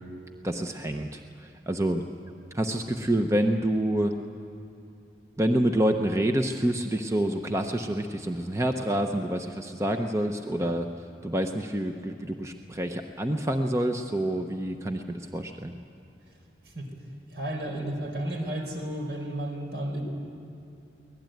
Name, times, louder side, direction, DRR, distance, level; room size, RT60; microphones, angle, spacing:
voice 1, 0.4-2.0 2.5-4.1 5.4-10.9 11.2-15.8, right 1 dB, 15° right, 5 dB, 0.8 m, -27 dB
voice 2, 17.3-20.0, right 1 dB, 70° right, 3 dB, 4.4 m, -33 dB
24.0 x 18.5 x 9.2 m, 2.8 s
head